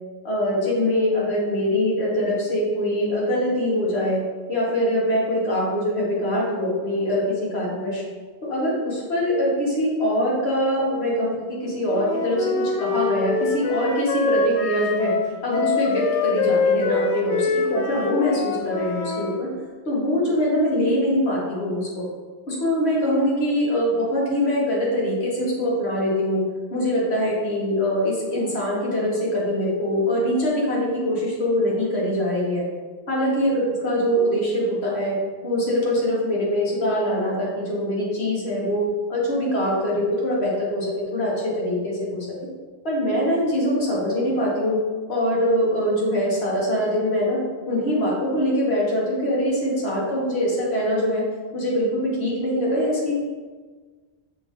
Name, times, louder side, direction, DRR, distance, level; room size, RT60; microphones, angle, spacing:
voice 1, 0.2-4.2 4.5-8.0 8.5-15.1 15.4-17.4 17.7-19.5 19.8-22.0 22.5-26.4 26.7-32.6 33.1-35.2 35.4-38.8 39.1-42.3 42.8-44.8 45.1-47.4 47.7-51.2 51.5-53.2, equal, 70° left, -5 dB, 1.5 m, -23 dB
Wind instrument woodwind instrument, 11.9-19.3, left 4 dB, 90° left, 0.9 m, -24 dB
5.9 x 2.5 x 3.6 m, 1.4 s
omnidirectional pair, 1.1 m